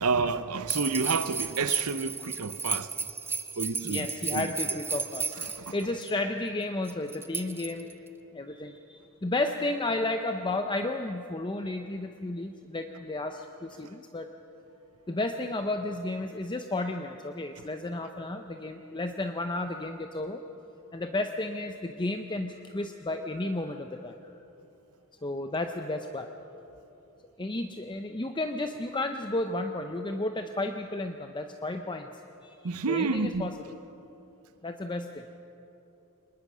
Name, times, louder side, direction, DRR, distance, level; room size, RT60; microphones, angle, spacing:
voice 1, 0.0-2.9 3.6-4.5 5.4-5.8 13.8-13.9 32.6-33.5, right 4 dB, 70° right, 0.8 m, -30 dB
sound 1, 0.7-6.1 6.9-8.1, right 4 dB, 10° right, 0.7 m, -33 dB
voice 2, 3.8-7.9 8.3-14.3 15.1-20.4 20.9-24.1 25.2-26.3 27.4-32.1 32.4-32.6 32.9-33.5 34.6-35.2, left 2 dB, 20° left, 0.7 m, -32 dB
24.5 x 20.5 x 6.2 m
head